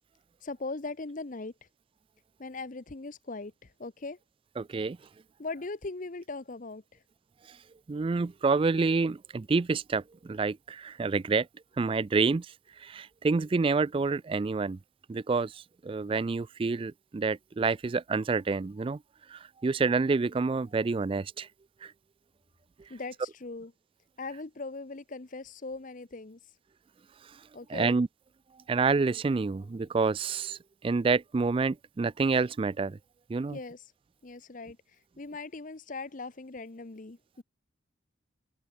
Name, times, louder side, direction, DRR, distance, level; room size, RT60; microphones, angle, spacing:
voice 1, 0.4-1.5 2.4-4.2 5.4-7.0 22.9-23.7 24.2-26.5 27.5-28.0 33.5-33.9 34.2-37.4, left 3 dB, 45° left, 0.8 m, -40 dB
voice 2, 4.6-5.0 7.9-11.5 11.8-12.5 12.8-14.8 15.1-19.0 19.3-21.5 21.8-21.9 27.7-28.1 28.7-33.0 33.3-33.6, right 4 dB, 30° right, 0.3 m, -28 dB
head